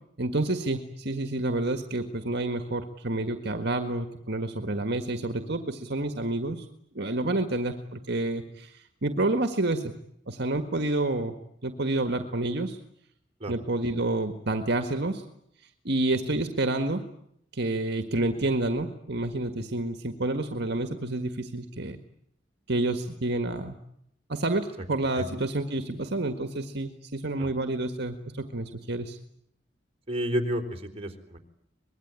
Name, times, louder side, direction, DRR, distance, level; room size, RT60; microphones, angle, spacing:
voice 1, 0.2-6.6 6.9-9.9 10.3-11.3 11.6-12.8 13.5-15.3 15.8-17.0 17.5-22.0 22.7-23.8 24.3-29.2, right 2 dB, 65° right, 8 dB, 1.7 m, -29 dB
voice 2, 30.1-31.4, equal, 35° right, 4 dB, 3.8 m, -30 dB
25.0 x 21.0 x 9.6 m, 0.74 s
head